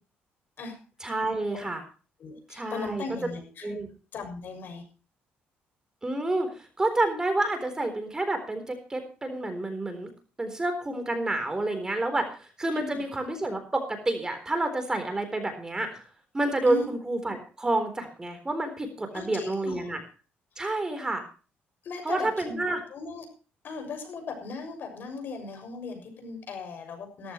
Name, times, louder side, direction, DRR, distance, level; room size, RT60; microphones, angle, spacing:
voice 1, 1.0-1.8 2.5-3.0 3.6-3.9 6.0-10.1 10.4-16.0 16.3-20.0 20.6-21.2 22.0-22.8, right 2 dB, 15° right, 7 dB, 3.9 m, -29 dB
voice 2, 2.2-3.7 4.1-4.8 12.7-13.0 16.7-16.9 19.1-19.9 21.8-22.6 22.9-23.2 23.6-27.3, left 4 dB, 55° left, 6 dB, 6.7 m, -38 dB
17.0 x 14.5 x 3.1 m, 0.36 s
cardioid pair, 110°, 4 cm